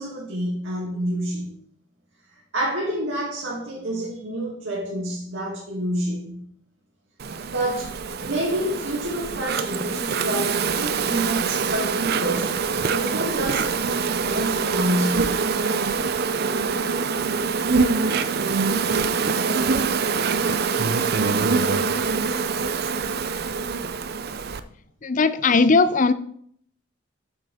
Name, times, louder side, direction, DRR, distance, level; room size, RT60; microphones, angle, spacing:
voice 1, 0.0-1.5 2.5-6.4 7.5-7.9 8.2-12.5 12.9-15.4, right 1 dB, 65° right, 2.3 m, -28 dB
Insect, 7.2-24.6, right 5 dB, 50° right, 0.5 m, -24 dB
voice 2, 25.0-26.1, left 4 dB, 40° left, 0.5 m, -18 dB
8.6 x 6.5 x 5.0 m
head